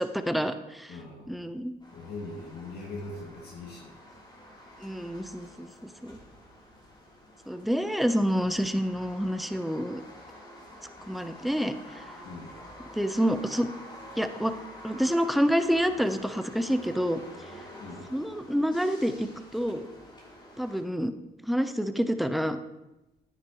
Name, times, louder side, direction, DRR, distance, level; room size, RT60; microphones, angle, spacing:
voice 1, 0.0-0.9 1.3-1.7 4.8-5.7 6.0-6.2 7.5-10.0 11.1-12.0 12.9-13.7 14.2-14.5 14.8-17.2 18.1-19.3 19.5-19.9 20.6-21.1 21.4-22.6, equal, ahead, 9 dB, 0.7 m, -28 dB
voice 2, 0.9-1.3 1.9-3.9 12.2-12.6 17.8-18.1, left 2 dB, 65° left, -4 dB, 2.2 m, -41 dB
sound 1, 1.8-20.8, left 1 dB, 25° left, 3.4 m, -48 dB
9.7 x 9.4 x 3.0 m, 0.99 s
supercardioid pair, 60°, 18 cm